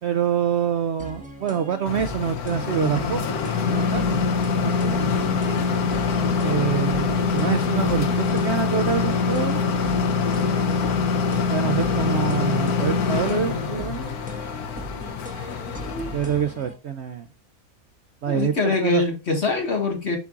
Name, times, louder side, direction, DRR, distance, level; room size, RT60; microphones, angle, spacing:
voice 1, 0.0-3.4 3.7-4.2 4.6-5.1 6.4-9.6 11.5-14.0 16.1-17.3 18.2-19.0, right 8 dB, 65° right, 0.7 m, -26 dB
sound 1, 1.0-16.7, equal, 5° right, 1.3 m, -39 dB
sound 2, 1.9-16.5, left 5 dB, 85° left, 1.4 m, -24 dB
voice 2, 18.3-20.2, left 3 dB, 45° left, 1.8 m, -24 dB
8.2 x 5.8 x 2.4 m
omnidirectional pair, 1.6 m